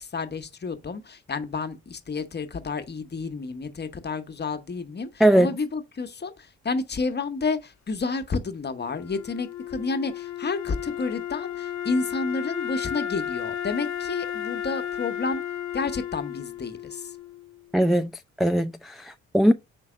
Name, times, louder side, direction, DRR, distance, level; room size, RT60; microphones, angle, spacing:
voice 1, 0.0-15.4 15.7-17.1, left 4 dB, 30° left, 1.1 m, -30 dB
voice 2, 5.2-5.5 17.7-18.1 18.4-19.5, equal, ahead, 0.3 m, -20 dB
Wind instrument woodwind instrument, 8.7-17.8, left 10 dB, 60° left, 1.0 m, -33 dB
5.3 x 3.9 x 4.9 m
hypercardioid pair, 50°, 33 cm